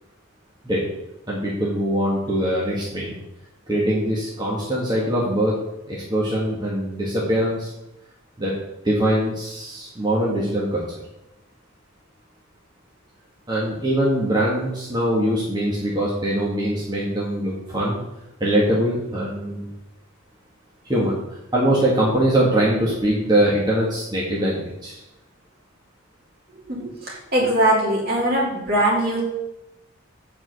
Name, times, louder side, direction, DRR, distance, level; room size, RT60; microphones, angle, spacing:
voice 1, 1.3-3.1 3.7-5.6 5.9-7.7 8.4-8.5 8.8-10.8 13.5-18.0 18.4-19.7 20.8-21.1 21.5-25.0, right 1 dB, 20° right, -6 dB, 1.6 m, -22 dB
voice 2, 26.7-29.2, right 1 dB, 50° right, -3 dB, 3.0 m, -21 dB
8.7 x 4.9 x 6.8 m, 0.92 s
head